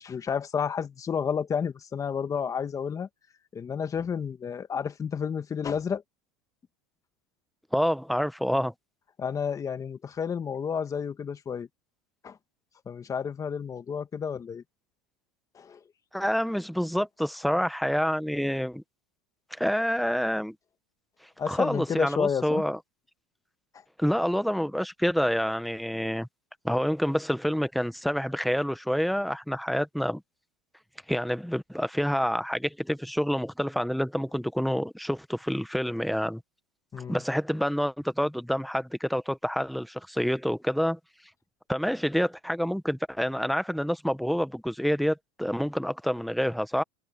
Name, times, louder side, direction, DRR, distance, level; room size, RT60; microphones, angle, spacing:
voice 1, 0.0-3.1 3.5-6.0 9.2-11.7 12.2-12.4 12.9-14.6 15.5-15.8 21.4-22.6 36.9-37.2, left 7 dB, 25° left, 1.5 m, -31 dB
voice 2, 7.7-8.7 16.1-18.8 19.5-20.5 21.5-22.8 24.0-26.3 26.6-30.2 31.1-36.4 37.1-41.0 41.7-46.8, equal, ahead, 1.0 m, -27 dB
supercardioid pair, 125°, 14 cm